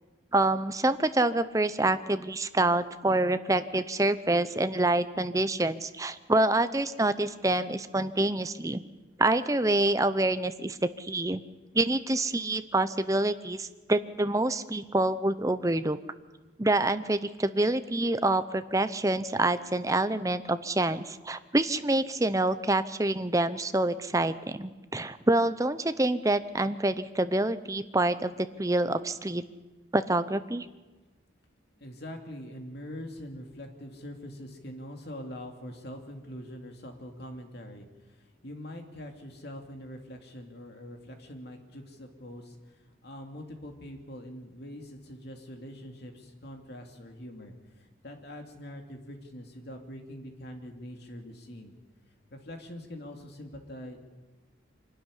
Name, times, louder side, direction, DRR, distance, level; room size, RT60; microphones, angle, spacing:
voice 1, 0.3-8.8 9.2-11.4 11.7-16.0 16.6-29.4 29.9-30.7, right 2 dB, 15° right, 12 dB, 0.7 m, -27 dB
voice 2, 31.8-51.7 52.3-54.0, equal, 55° left, 3 dB, 2.7 m, -43 dB
25.5 x 12.5 x 10.0 m, 1.2 s
head